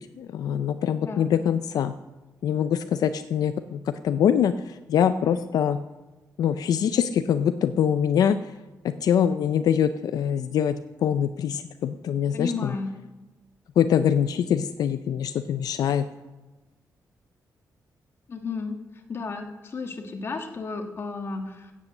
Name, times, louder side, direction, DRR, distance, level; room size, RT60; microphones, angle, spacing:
voice 1, 0.0-1.9 2.4-5.8 6.4-8.5 8.8-10.8 11.0-12.7 13.8-16.1, left 8 dB, 75° left, 10 dB, 0.5 m, -24 dB
voice 2, 1.0-1.3 12.3-12.9 18.3-18.8 19.1-21.7, left 4 dB, 40° left, 4 dB, 1.6 m, -33 dB
16.0 x 8.5 x 6.6 m, 1.1 s
wide cardioid pair, 175°, 7 cm